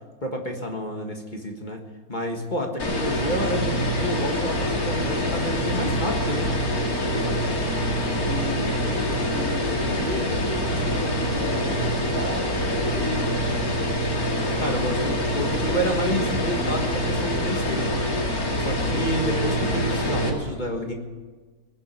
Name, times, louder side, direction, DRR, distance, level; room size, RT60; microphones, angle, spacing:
voice 1, 0.2-1.8 2.1-6.5 14.6-20.9, equal, 30° left, 2 dB, 1.8 m, -29 dB
sound 1, 2.8-20.3, equal, 70° left, 2.7 m, -25 dB
voice 2, 7.0-9.0 9.3-13.9, left 1 dB, 35° right, -2 dB, 2.9 m, -34 dB
20.0 x 7.6 x 9.3 m, 1.4 s
omnidirectional pair, 1.6 m